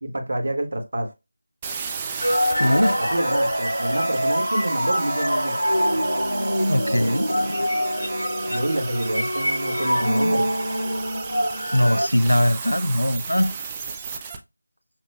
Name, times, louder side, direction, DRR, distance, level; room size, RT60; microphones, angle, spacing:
voice 1, 0.0-1.1 3.0-5.5 8.4-10.5, right 1 dB, 45° right, 1.0 m, -27 dB
sound 1, 1.6-14.4, right 5 dB, 10° right, 0.3 m, -35 dB
sound 2, 2.2-12.1, equal, 85° right, 0.5 m, -24 dB
voice 2, 2.6-3.1 6.7-7.4 11.7-13.6, equal, 85° left, 0.3 m, -21 dB
6.0 x 2.4 x 2.2 m
figure-of-eight pair, 165°, 0 cm